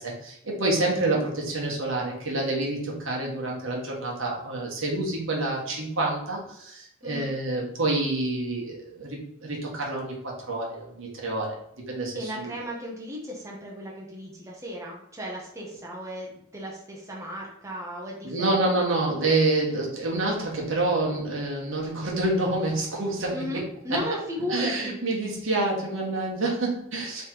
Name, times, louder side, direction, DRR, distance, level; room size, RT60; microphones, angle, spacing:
voice 1, 0.0-11.6 11.9-12.5 18.2-24.1 24.5-27.3, right 2 dB, 65° right, -2 dB, 1.4 m, -28 dB
voice 2, 7.0-7.4 12.1-18.9 23.3-25.0, equal, 15° right, -3 dB, 0.9 m, -35 dB
3.6 x 3.3 x 4.4 m, 0.72 s
head